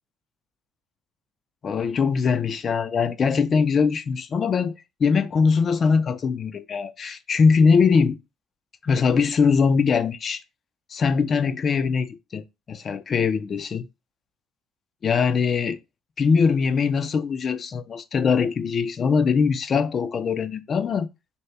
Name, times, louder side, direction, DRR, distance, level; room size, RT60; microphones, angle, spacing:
voice 1, 1.6-4.7 5.0-8.2 8.8-10.4 10.9-13.9 15.0-15.8 16.2-21.1, left 5 dB, 45° left, 0.4 m, -22 dB
2.8 x 2.8 x 3.3 m
supercardioid pair, 80°, 0 cm